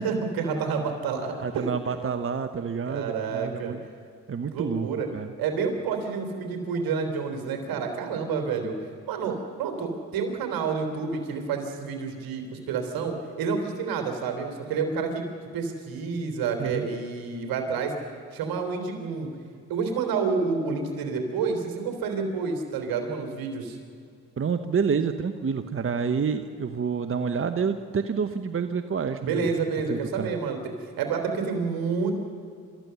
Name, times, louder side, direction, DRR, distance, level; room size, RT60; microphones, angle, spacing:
voice 1, 0.0-1.7 2.8-3.8 4.5-5.1 5.4-8.7 9.1-15.3 15.5-17.9 18.3-19.3 19.7-23.8 29.2-30.6 31.0-32.1, right 5 dB, 75° right, 5 dB, 3.5 m, -29 dB
voice 2, 1.4-3.8 4.3-5.3 16.6-16.9 24.4-29.5 29.9-30.3, right 6 dB, 35° right, 9 dB, 1.1 m, -28 dB
28.0 x 14.0 x 7.0 m, 2.3 s
supercardioid pair, 60°, 36 cm